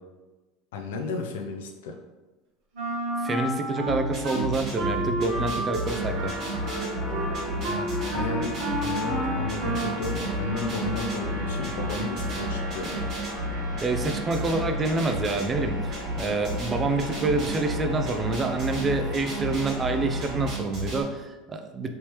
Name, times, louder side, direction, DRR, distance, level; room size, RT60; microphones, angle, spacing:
voice 1, 0.7-2.0 7.7-13.1, left 3 dB, 85° left, 4 dB, 0.4 m, -33 dB
Wind instrument woodwind instrument, 2.7-4.4 4.8-10.1, right 1 dB, 75° right, 1.5 m, -31 dB
voice 2, 3.2-6.3 13.8-21.9, right 3 dB, 25° right, 6 dB, 0.4 m, -27 dB
sound 1, 3.9-21.0, right 1 dB, 50° right, 1.4 m, -33 dB
sound 2, 5.8-20.5, left 1 dB, 20° left, 1.3 m, -36 dB
3.3 x 3.0 x 2.9 m, 1.2 s
supercardioid pair, 105°, 0 cm